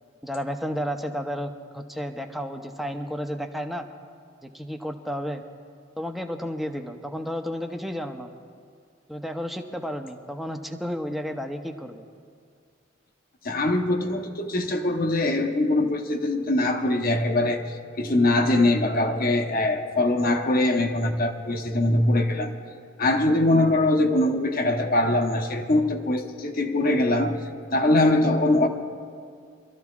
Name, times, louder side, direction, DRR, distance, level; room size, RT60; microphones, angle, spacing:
voice 1, 0.2-3.9 4.4-5.4 6.0-8.3 9.1-12.0, equal, ahead, 4 dB, 0.6 m, -32 dB
voice 2, 13.4-22.5 23.0-27.4 27.7-28.7, left 1 dB, 45° left, 5 dB, 0.9 m, -22 dB
27.0 x 13.5 x 2.4 m, 2.2 s
head